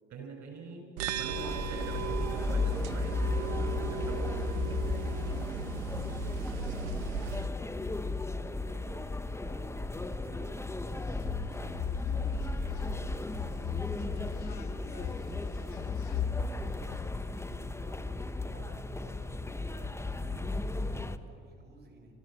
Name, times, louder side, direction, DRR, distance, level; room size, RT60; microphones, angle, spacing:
voice 1, 0.1-0.9 1.1-4.7 5.2-5.4, right 4 dB, 55° right, 4 dB, 6.2 m, -44 dB
sound 1, 1.0-7.5, right 9 dB, 80° right, 1.0 m, -37 dB
sound 2, 1.3-21.2, left 3 dB, 10° left, 1.0 m, -35 dB
voice 2, 6.3-22.1, right 1 dB, 30° right, 1 dB, 6.2 m, -56 dB
sound 3, 10.9-17.1, left 8 dB, 60° left, 1.5 m, -37 dB
29.0 x 14.0 x 7.7 m, 2.4 s
hypercardioid pair, 65°, 33 cm